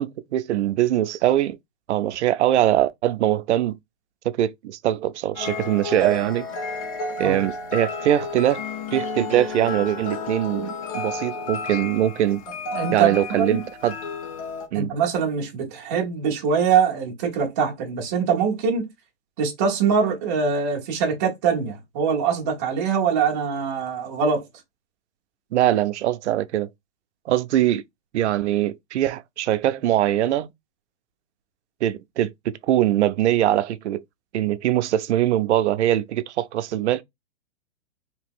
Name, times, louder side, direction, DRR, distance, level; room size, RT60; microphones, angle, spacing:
voice 1, 0.0-1.6 1.9-3.8 4.2-6.5 7.2-8.6 8.9-12.4 12.9-13.9 14.7-14.9 25.5-26.7 27.3-27.8 28.1-30.5 31.8-34.0 34.3-37.0, right 12 dB, 85° right, 0.5 m, -22 dB
sound 1, 5.3-14.7, left 3 dB, 30° left, 0.7 m, -32 dB
voice 2, 12.7-13.7 14.7-18.9 19.4-24.4, right 6 dB, 15° right, 0.5 m, -23 dB
3.3 x 2.8 x 3.5 m
supercardioid pair, 175°, 34 cm